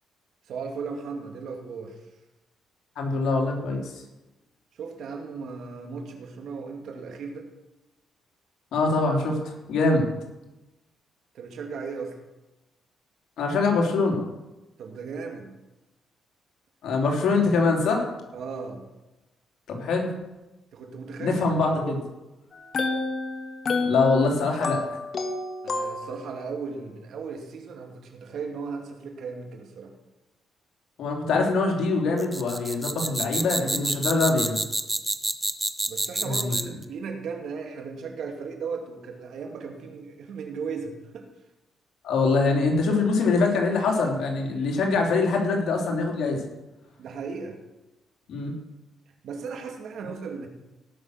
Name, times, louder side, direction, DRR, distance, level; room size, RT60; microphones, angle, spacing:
voice 1, 0.5-2.0 4.7-7.5 11.3-12.2 14.8-15.5 18.3-18.8 20.7-22.0 25.6-29.9 35.9-41.3 47.0-47.6 49.2-50.5, right 5 dB, 70° right, 2 dB, 2.5 m, -36 dB
voice 2, 3.0-3.9 8.7-10.1 13.4-14.2 16.8-18.1 19.7-20.1 21.2-22.0 23.8-24.8 31.0-34.6 36.2-36.5 42.0-46.5 48.3-48.5, left 3 dB, 75° left, 1 dB, 3.2 m, -24 dB
sound 1, 22.5-26.5, left 3 dB, 50° left, 1.5 m, -30 dB
sound 2, 32.2-36.8, right 1 dB, 10° right, 1.0 m, -28 dB
17.5 x 6.4 x 6.5 m, 1.0 s
cardioid pair, 90°, 0 cm